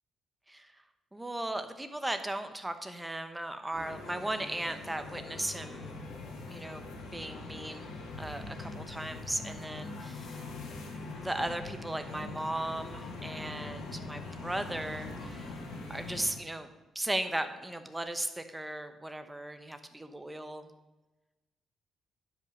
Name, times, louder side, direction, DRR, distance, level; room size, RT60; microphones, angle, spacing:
voice 1, 0.5-0.8 1.1-5.9 6.5-7.9 8.2-10.4 11.2-15.6 15.9-16.7 16.9-20.7, right 1 dB, 10° right, 9 dB, 1.0 m, -37 dB
sound 1, 3.7-16.3, left 3 dB, 75° left, 2.4 m, -42 dB
10.5 x 5.7 x 6.5 m, 1.1 s
cardioid pair, 90°, 0 cm